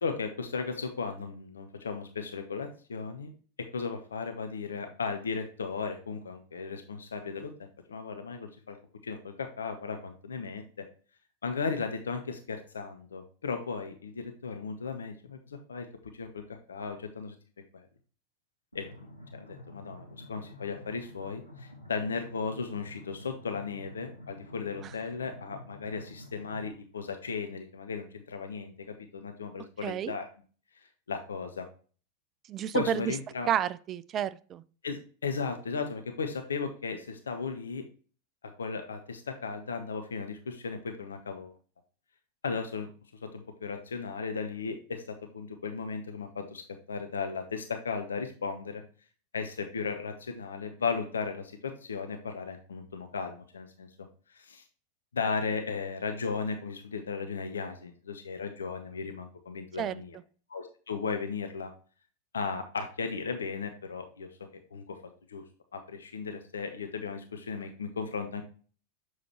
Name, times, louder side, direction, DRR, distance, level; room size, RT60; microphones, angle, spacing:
voice 1, 0.0-3.3 3.6-7.5 7.9-8.8 9.0-10.6 11.4-15.9 16.1-17.3 17.7-17.9 18.7-30.3 30.7-31.7 32.7-33.5 34.8-37.8 38.6-41.5 42.4-42.9 43.2-46.6 46.9-48.8 49.3-53.9 54.3-54.6 55.1-60.2 60.5-61.7 62.3-64.3 64.7-65.0 65.3-65.4 65.7-68.4, left 5 dB, 70° left, 6 dB, 0.7 m, -36 dB
sound 1, 18.7-26.7, left 1 dB, 85° left, 1.9 m, -49 dB
voice 2, 29.8-30.1 32.5-33.0 33.5-34.6 59.8-59.9, right 10 dB, 30° right, 17 dB, 0.3 m, -30 dB
7.0 x 4.8 x 2.9 m, 0.40 s
figure-of-eight pair, 90°, 0 cm